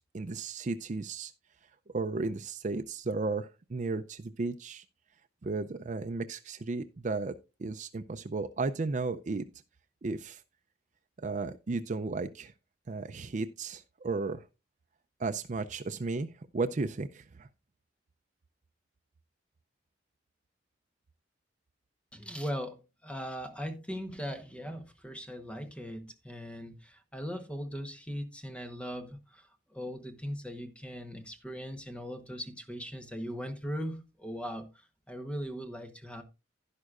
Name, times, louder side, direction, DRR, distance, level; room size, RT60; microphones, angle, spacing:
voice 1, 0.1-1.3 1.9-4.8 5.4-7.3 7.6-9.4 10.0-10.4 11.2-12.5 12.9-14.5 15.2-17.5, right 3 dB, 45° right, 0.4 m, -34 dB
voice 2, 22.1-34.7 35.1-36.2, equal, 5° left, 1.0 m, -39 dB
11.0 x 10.5 x 2.4 m
head